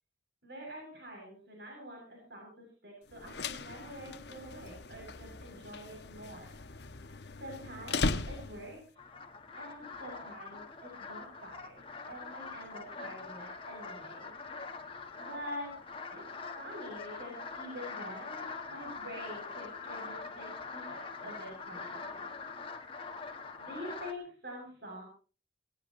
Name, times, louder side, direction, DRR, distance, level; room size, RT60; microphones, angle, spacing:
voice 1, 0.4-6.5 7.3-8.8 9.6-10.6 11.0-14.3 15.2-15.7 16.1-22.3 23.6-25.0, equal, 60° right, -1 dB, 7.6 m, -46 dB
sound 1, 3.1-8.9, left 3 dB, 65° left, 1.1 m, -38 dB
sound 2, 9.0-24.1, left 4 dB, 30° left, 1.5 m, -44 dB
19.0 x 18.0 x 3.1 m, 0.37 s
head